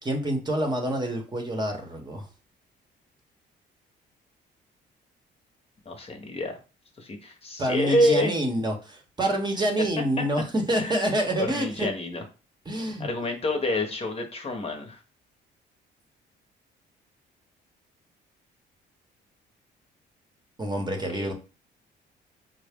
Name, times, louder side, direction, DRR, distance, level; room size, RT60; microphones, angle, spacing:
voice 1, 0.0-2.3 7.6-11.9 12.6-13.1 20.6-21.3, right 1 dB, 20° right, 3 dB, 0.8 m, -27 dB
voice 2, 5.9-6.6 7.0-8.3 9.8-9.9 10.7-11.0 11.4-12.2 13.0-15.0 21.1-21.3, left 1 dB, 30° left, 4 dB, 0.8 m, -27 dB
4.6 x 2.0 x 3.5 m, 0.33 s
cardioid pair, 100°, 19 cm